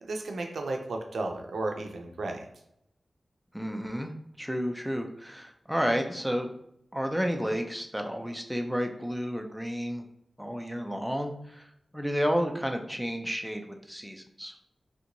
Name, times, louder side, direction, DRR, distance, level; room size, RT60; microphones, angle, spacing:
voice 1, 0.0-2.5, right 2 dB, 90° right, 3 dB, 0.4 m, -33 dB
voice 2, 3.5-4.1 4.4-6.5 6.9-10.1 10.4-11.7 11.9-14.5, equal, ahead, 4 dB, 0.4 m, -31 dB
3.3 x 2.9 x 2.6 m, 0.78 s
wide cardioid pair, 90°, 0 cm